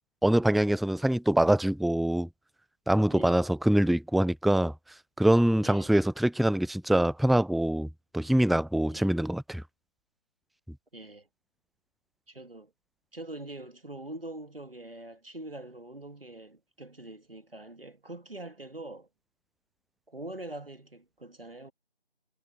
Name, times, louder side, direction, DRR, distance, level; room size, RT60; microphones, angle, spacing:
voice 1, 0.2-2.3 2.9-4.7 5.2-7.9 8.1-9.6, right 1 dB, ahead, 0.3 m, -24 dB
voice 2, 3.1-3.4 5.6-5.9 8.9-9.1 10.9-11.3 12.3-12.7 13.1-19.1 20.1-21.7, right 1 dB, 65° right, 2.3 m, -43 dB
figure-of-eight pair, 175°, 31 cm